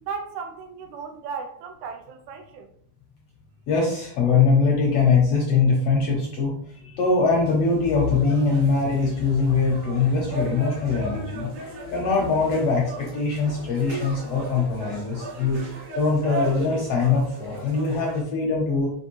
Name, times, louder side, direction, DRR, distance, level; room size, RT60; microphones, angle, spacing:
voice 1, 0.0-2.7, right 5 dB, 80° right, 4 dB, 1.8 m, -35 dB
voice 2, 3.7-11.5 11.9-15.6 16.0-18.9, left 4 dB, 70° left, -2 dB, 1.5 m, -22 dB
sound 1, 7.1-18.2, right 1 dB, 65° right, 2.2 m, -36 dB
5.1 x 3.0 x 3.0 m, 0.63 s
omnidirectional pair, 3.5 m